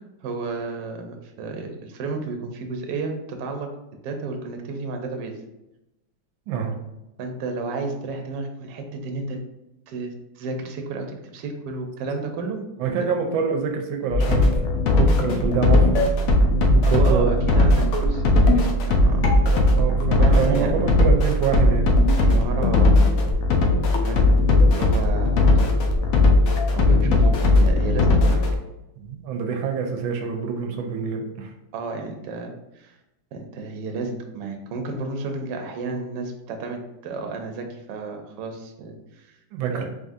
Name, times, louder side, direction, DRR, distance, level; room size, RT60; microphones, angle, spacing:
voice 1, 0.2-3.7 4.0-5.3 7.2-9.4 9.9-12.9 16.8-19.2 20.2-20.7 22.2-23.3 23.9-25.9 26.7-28.4 31.7-33.0 33.3-39.4 39.7-39.9, right 3 dB, 70° right, 4 dB, 1.2 m, -32 dB
voice 2, 6.5-6.8 12.8-14.6 14.9-15.9 16.7-17.4 19.8-21.9 27.0-27.3 29.0-31.5 39.5-39.9, right 6 dB, 90° right, 3 dB, 1.4 m, -26 dB
sound 1, 14.1-28.6, left 2 dB, 70° left, 0.8 m, -18 dB
3.7 x 3.6 x 2.6 m, 0.92 s
omnidirectional pair, 2.1 m